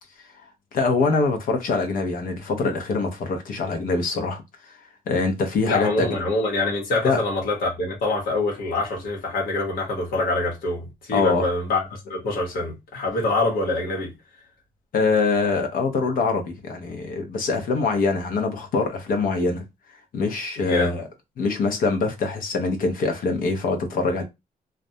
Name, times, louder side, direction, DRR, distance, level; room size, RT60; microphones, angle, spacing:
voice 1, 0.7-4.7 5.1-6.1 7.0-7.2 11.1-11.4 14.9-19.6 20.1-21.1 21.4-24.2, left 4 dB, 65° left, 0.7 m, -24 dB
voice 2, 5.6-14.1 20.6-21.0, left 2 dB, 85° left, 1.0 m, -25 dB
2.3 x 2.1 x 2.7 m
cardioid pair, 125°, 15 cm